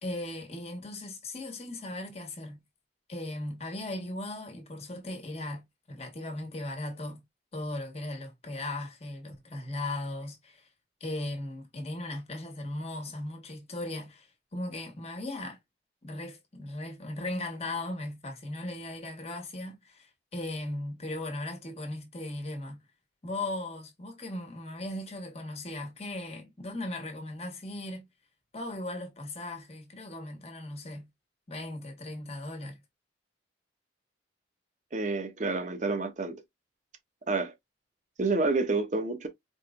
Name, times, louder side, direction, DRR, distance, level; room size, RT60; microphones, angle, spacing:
voice 1, 0.0-2.6 3.1-7.2 7.5-10.7 11.0-15.6 16.0-22.8 23.2-28.1 28.5-31.1 31.5-32.8, left 1 dB, 35° left, 1.2 m, -37 dB
voice 2, 34.9-36.4 37.3-37.5 38.2-39.3, right 3 dB, 40° right, 0.8 m, -29 dB
4.5 x 3.1 x 2.4 m
head